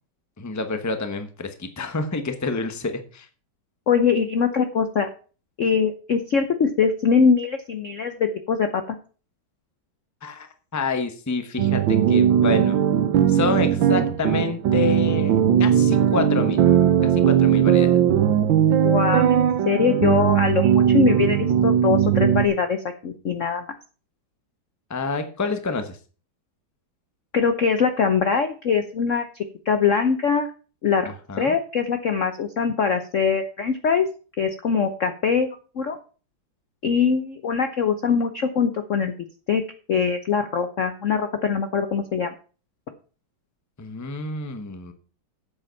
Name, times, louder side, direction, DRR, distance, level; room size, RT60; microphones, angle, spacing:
voice 1, 0.4-3.3 10.2-10.5 10.7-12.8 13.3-16.6 17.0-18.0 24.9-26.0 31.0-31.6 43.8-44.9, left 4 dB, 15° left, 7 dB, 0.8 m, -28 dB
voice 2, 3.9-5.1 5.6-9.0 18.7-23.6 27.3-30.5 30.8-31.1 31.4-34.1 34.4-36.0 36.8-39.1 39.5-39.6 39.9-42.3, left 6 dB, 55° left, 8 dB, 0.9 m, -22 dB
sound 1, 11.6-22.5, right 9 dB, 75° right, 1.5 m, -19 dB
8.7 x 7.8 x 5.7 m, 0.39 s
omnidirectional pair, 2.2 m